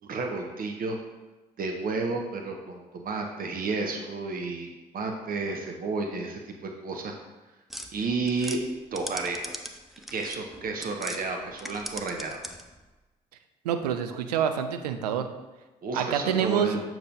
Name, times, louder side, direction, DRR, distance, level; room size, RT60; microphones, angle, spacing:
voice 1, 0.0-1.0 1.6-4.7 4.9-7.1 7.9-8.6 8.9-9.5 10.1-12.4 15.8-16.8, right 3 dB, 45° right, 3 dB, 0.9 m, -31 dB
sound 1, 7.7-11.2 11.5-12.8, equal, ahead, 0.6 m, -40 dB
voice 2, 13.6-15.3 15.9-16.7, right 8 dB, 80° right, 8 dB, 0.5 m, -27 dB
6.8 x 3.1 x 5.2 m, 1.1 s
figure-of-eight pair, 45°, 20 cm